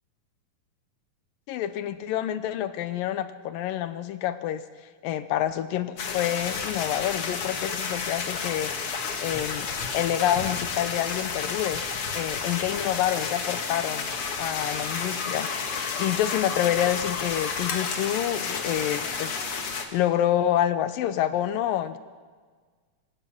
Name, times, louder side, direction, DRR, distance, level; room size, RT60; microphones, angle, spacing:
voice 1, 1.5-4.6 5.0-8.7 9.2-9.7 9.9-11.8 12.1-14.1 14.4-15.5 16.0-19.4 19.9-22.0, left 11 dB, 80° left, 12 dB, 2.4 m, -27 dB
sound 1, 6.0-19.8, left 5 dB, 50° left, 2.0 m, -31 dB
26.5 x 16.5 x 6.2 m, 1.5 s
omnidirectional pair, 4.3 m